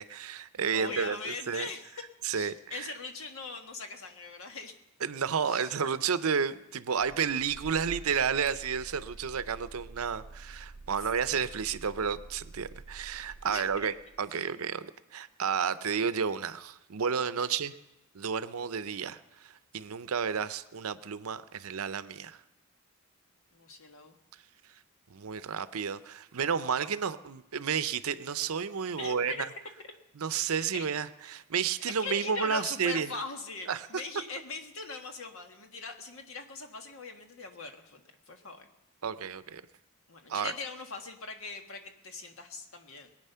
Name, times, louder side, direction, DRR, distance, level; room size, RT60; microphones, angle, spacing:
voice 1, 0.0-1.7 2.2-2.9 5.0-17.8 18.1-22.4 25.1-29.3 30.2-33.1 33.7-33.9 39.0-39.6 40.3-40.5, right 6 dB, 80° right, 14 dB, 0.6 m, -31 dB
voice 2, 0.7-1.9 2.3-4.7 5.4-5.7 11.0-11.1 13.5-13.9 14.3-14.4 23.5-24.2 29.0-29.5 30.4-30.9 32.0-38.7 40.1-43.1, left 3 dB, 70° left, 5 dB, 1.5 m, -41 dB
sound 1, 6.9-14.3, right 3 dB, 40° right, 0.5 m, -48 dB
21.5 x 8.9 x 5.6 m, 0.99 s
head